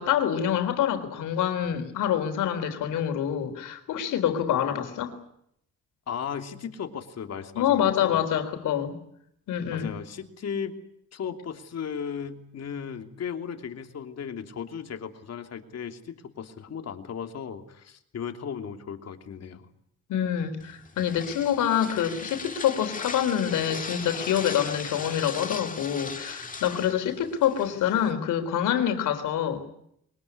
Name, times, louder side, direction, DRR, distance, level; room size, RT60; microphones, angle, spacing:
voice 1, 0.0-5.2 7.6-9.0 9.5-9.9 20.1-29.7, left 9 dB, 85° left, 7 dB, 3.9 m, -26 dB
voice 2, 6.1-8.2 9.7-10.8 11.1-19.7, left 7 dB, 55° left, 6 dB, 3.0 m, -36 dB
sound 1, 20.6-28.1, left 4 dB, 25° left, 2.0 m, -38 dB
23.0 x 20.0 x 9.7 m, 0.72 s
cardioid pair, 90°, 30 cm